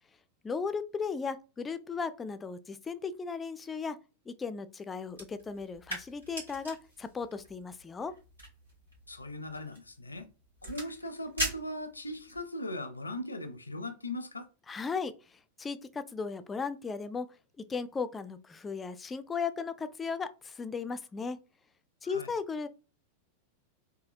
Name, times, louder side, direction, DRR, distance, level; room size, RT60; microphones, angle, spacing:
voice 1, 0.4-4.0 4.3-8.1 14.7-17.3 17.6-21.4 22.0-22.7, left 5 dB, 15° left, 0.3 m, -36 dB
sound 1, 5.1-12.5, right 1 dB, 80° right, 1.9 m, -42 dB
voice 2, 9.1-10.3 10.6-14.5 22.0-22.3, left 1 dB, 80° left, 0.5 m, -39 dB
3.9 x 2.7 x 2.7 m
figure-of-eight pair, 90°, 0 cm